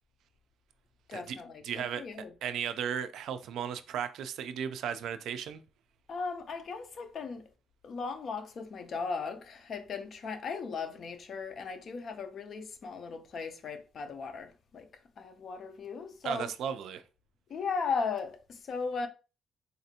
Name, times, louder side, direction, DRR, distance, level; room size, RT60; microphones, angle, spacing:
voice 1, 1.1-2.3 6.1-7.4 7.8-16.5 17.5-19.1, left 5 dB, 40° left, 0.5 m, -37 dB
voice 2, 1.6-2.0 2.4-5.6 16.2-17.0, right 8 dB, 70° right, 0.3 m, -35 dB
4.0 x 2.5 x 2.7 m
cardioid pair, 165°, 0 cm